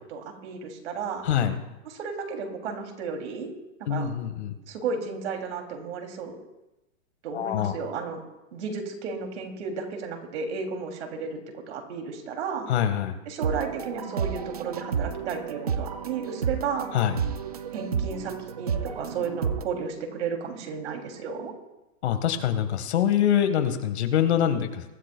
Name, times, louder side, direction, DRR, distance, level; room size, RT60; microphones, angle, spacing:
voice 1, 0.1-1.3 1.8-3.5 3.9-4.1 4.7-6.4 7.2-8.2 8.5-11.4 11.7-12.7 13.2-16.9 17.7-21.5, right 5 dB, 55° right, 3 dB, 2.8 m, -33 dB
voice 2, 1.2-1.6 3.9-4.5 7.3-7.7 12.7-13.2 16.9-17.2 22.0-24.8, left 9 dB, 55° left, 8 dB, 1.6 m, -24 dB
sound 1, 13.4-19.6, right 7 dB, 30° right, 0.4 m, -31 dB
23.0 x 13.0 x 2.3 m, 0.97 s
hypercardioid pair, 165°, 40 cm